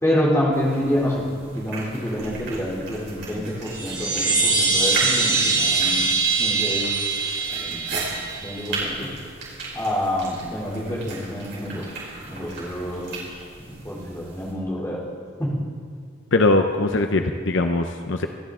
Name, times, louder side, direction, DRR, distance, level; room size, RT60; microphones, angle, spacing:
voice 1, 0.0-1.3 1.5-6.1 6.4-6.9 7.5-8.0 8.4-9.1 9.7-15.0 15.4-15.5, equal, 15° left, -5 dB, 3.0 m, -27 dB
sound 1, 0.5-14.5, right 3 dB, 55° right, 5.0 m, -36 dB
sound 2, 3.7-8.7, right 4 dB, 20° right, 2.0 m, -23 dB
voice 2, 16.3-18.3, left 2 dB, 65° left, 6 dB, 0.7 m, -21 dB
26.5 x 10.5 x 3.7 m, 2.1 s
head